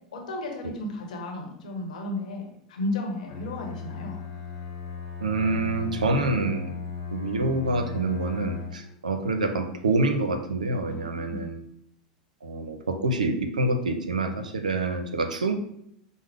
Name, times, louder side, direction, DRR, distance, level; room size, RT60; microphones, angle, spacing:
voice 1, 0.1-4.2 10.9-11.5, left 2 dB, 75° left, 1 dB, 1.0 m, -34 dB
Bowed string instrument, 3.3-9.0, left 6 dB, 50° left, 1.0 m, -36 dB
voice 2, 5.2-6.7 7.1-11.6 12.4-15.5, right 2 dB, 90° right, 7 dB, 0.5 m, -27 dB
5.2 x 2.0 x 3.4 m, 0.73 s
hypercardioid pair, 95°, 4 cm